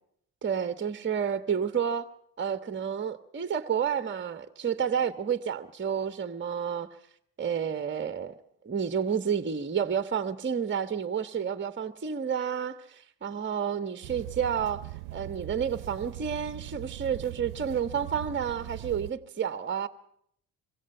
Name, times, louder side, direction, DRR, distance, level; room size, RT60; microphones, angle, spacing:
voice 1, 0.4-2.1 2.4-6.9 7.4-8.4 8.6-19.9, right 7 dB, 25° right, 1.4 m, -30 dB
sound 1, 14.0-19.1, right 20 dB, 75° right, 0.8 m, -40 dB
25.5 x 24.5 x 5.7 m
hypercardioid pair, 50°, 44 cm